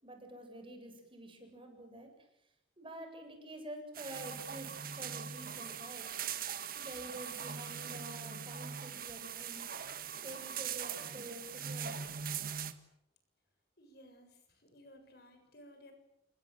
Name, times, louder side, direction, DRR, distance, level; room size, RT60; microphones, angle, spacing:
voice 1, 0.0-2.1 2.8-6.1 6.8-9.7 10.2-12.3, right 1 dB, 30° right, 4 dB, 7.7 m, -48 dB
sound 1, 3.9-12.7, right 7 dB, 50° right, 1.8 m, -41 dB
voice 2, 13.8-15.9, equal, 60° left, 6 dB, 7.4 m, -58 dB
29.0 x 24.0 x 7.8 m, 0.82 s
head